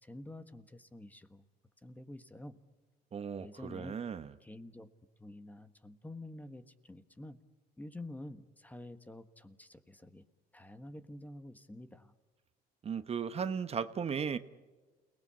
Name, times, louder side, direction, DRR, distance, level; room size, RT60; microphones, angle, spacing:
voice 1, 0.0-1.4 1.8-2.6 3.4-4.0 4.4-4.9 5.2-7.4 7.8-10.2 10.5-12.1, left 1 dB, 10° left, 11 dB, 1.4 m, -48 dB
voice 2, 3.1-4.3 12.8-14.4, right 6 dB, 35° right, 11 dB, 1.0 m, -36 dB
29.5 x 19.5 x 8.4 m, 1.3 s
cardioid pair, 110°, 17 cm